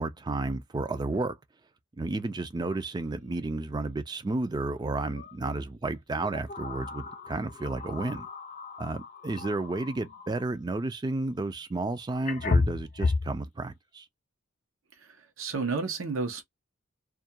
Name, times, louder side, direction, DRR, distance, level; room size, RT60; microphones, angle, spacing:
voice 1, 0.0-1.4 2.0-8.3 8.8-14.1, right 2 dB, 20° right, 0.3 m, -32 dB
sound 1, 2.7-2.8 3.2-3.3 5.1-5.3 6.2-10.5 11.7-11.8 12.2-13.4, left 3 dB, 40° left, 0.5 m, -32 dB
voice 2, 15.0-16.4, right 4 dB, 80° right, 0.6 m, -32 dB
2.3 x 2.2 x 2.6 m
head